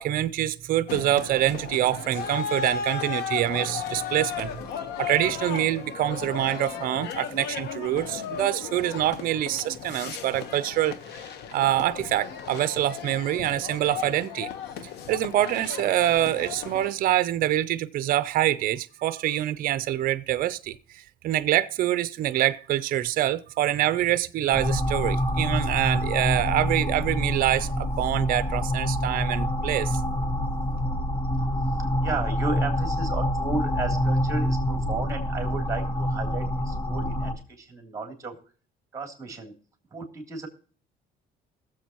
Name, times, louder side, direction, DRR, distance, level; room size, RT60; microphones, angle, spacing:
voice 1, 0.0-4.5 5.0-10.9 11.5-14.5 15.1-30.0, right 13 dB, 55° right, 0.5 m, -25 dB
sound 1, 0.9-16.9, left 7 dB, 80° left, 1.1 m, -35 dB
sound 2, 24.5-37.3, equal, 30° left, 1.2 m, -26 dB
voice 2, 32.0-38.3 38.9-39.5 39.9-40.5, right 3 dB, 20° right, 3.1 m, -34 dB
21.5 x 7.5 x 3.0 m
cardioid pair, 110°, 17 cm